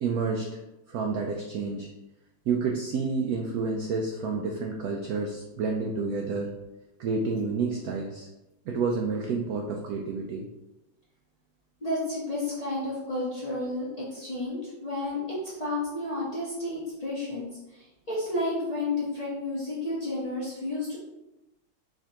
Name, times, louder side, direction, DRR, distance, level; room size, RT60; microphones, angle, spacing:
voice 1, 0.0-0.5 0.9-1.9 2.5-6.5 7.0-8.3 8.7-10.5, right 4 dB, 85° right, 1 dB, 0.8 m, -29 dB
voice 2, 11.8-21.0, left 2 dB, 30° left, -8 dB, 0.7 m, -31 dB
4.8 x 3.3 x 2.8 m, 0.97 s
omnidirectional pair, 2.1 m